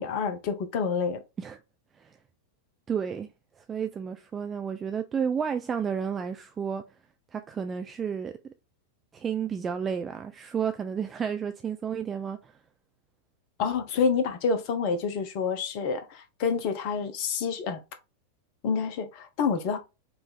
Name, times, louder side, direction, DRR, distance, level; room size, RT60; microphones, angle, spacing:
voice 1, 0.0-1.2 13.6-17.8 18.6-19.8, left 5 dB, 45° left, 0.8 m, -28 dB
voice 2, 2.9-3.3 3.7-6.8 7.3-8.5 9.1-12.4, right 7 dB, 20° right, 0.3 m, -31 dB
4.5 x 2.6 x 3.6 m
figure-of-eight pair, 90°, 0 cm